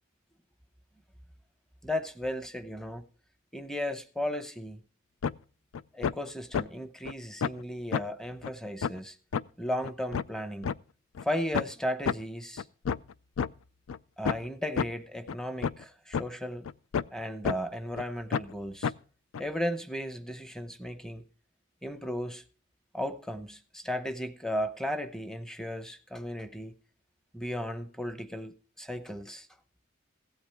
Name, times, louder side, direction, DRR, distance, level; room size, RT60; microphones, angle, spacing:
voice 1, 1.8-3.1 3.5-4.8 5.9-9.2 9.6-10.7 11.2-12.6 14.2-16.7 17.1-18.9 19.4-21.2 21.8-22.4 22.9-26.7 27.3-29.5, equal, ahead, 0.8 m, -35 dB
sound 1, 5.2-5.3 5.7-6.1 6.5-6.6 7.1-7.2 7.4-7.6 7.9-8.0 8.4-8.5 8.8-8.9 9.3-9.4 9.8-10.8 11.2-11.3 11.5-11.7 12.1-12.2 12.6-13.5 13.9-14.0 14.2-14.4 14.8-14.9 15.3-15.4 15.6-15.8 16.1-16.2 16.6-17.2 17.4-17.6 18.0-18.1 18.3-18.5 18.8-18.9 19.3-19.4, left 6 dB, 70° left, 0.4 m, -29 dB
16.0 x 8.7 x 3.5 m
head